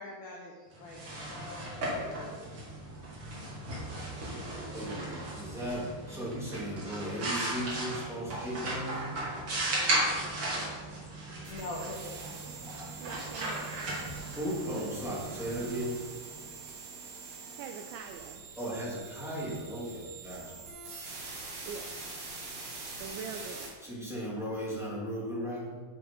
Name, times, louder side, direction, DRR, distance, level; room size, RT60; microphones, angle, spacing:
voice 1, 0.0-2.4 11.1-12.5, left 2 dB, 85° left, -1 dB, 2.0 m, -44 dB
sound 1, 0.7-16.4, right 1 dB, 50° right, 1.7 m, -36 dB
voice 2, 4.7-9.2 14.3-16.0 18.5-20.6 23.8-25.8, equal, ahead, -7 dB, 1.6 m, -36 dB
sound 2, 11.4-23.7, right 4 dB, 65° right, 5.1 m, -44 dB
voice 3, 13.0-14.3 17.6-18.4 21.7-21.9 23.0-23.9, right 6 dB, 85° right, 5 dB, 2.6 m, -44 dB
10.5 x 9.3 x 4.0 m, 1.5 s
omnidirectional pair, 6.0 m